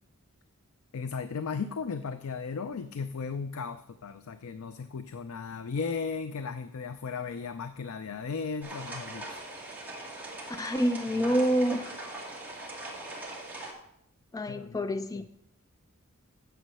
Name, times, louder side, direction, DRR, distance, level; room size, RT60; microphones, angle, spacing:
voice 1, 0.9-9.4 11.1-11.3 14.5-15.3, left 5 dB, 75° left, 10 dB, 0.5 m, -36 dB
sound 1, 8.6-13.7, right 2 dB, 10° right, 2.1 m, -41 dB
voice 2, 10.6-11.9 14.3-15.3, equal, 15° left, 10 dB, 0.4 m, -27 dB
9.2 x 7.3 x 5.5 m, 0.74 s
head